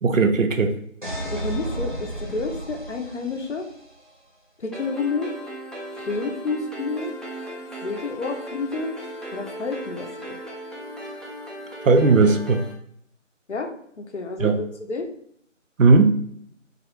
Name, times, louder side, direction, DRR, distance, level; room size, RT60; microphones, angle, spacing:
voice 1, 0.0-0.7 11.8-12.6 14.4-14.6 15.8-16.2, right 4 dB, 90° right, 7 dB, 0.5 m, -17 dB
sound 1, 1.0-3.9, right 1 dB, 40° right, 0.6 m, -33 dB
voice 2, 1.3-3.7 4.6-5.3 5.9-7.1 7.8-8.9 9.3-10.4 13.5-13.7 14.0-15.1, left 3 dB, 65° left, 4 dB, 0.5 m, -29 dB
sound 2, 4.7-12.7, right 1 dB, ahead, 0.4 m, -37 dB
2.2 x 2.0 x 2.9 m, 0.67 s
figure-of-eight pair, 175°, 38 cm